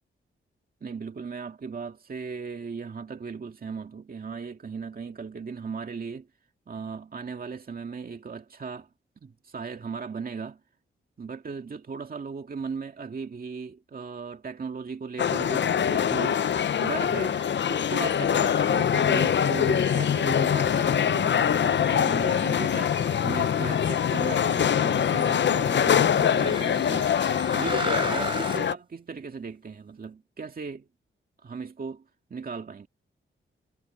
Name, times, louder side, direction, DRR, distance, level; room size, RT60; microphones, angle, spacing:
voice 1, 0.8-6.3 6.7-8.9 9.2-10.6 11.2-16.5 16.8-17.4 17.7-27.2 27.5-30.9 31.4-32.0 32.3-32.9, right 5 dB, 45° right, 2.0 m, -37 dB
sound 1, 15.2-28.7, left 8 dB, 60° left, 0.6 m, -24 dB
sound 2, 16.4-28.7, right 3 dB, 25° right, 4.0 m, -40 dB
wide cardioid pair, 105°, 21 cm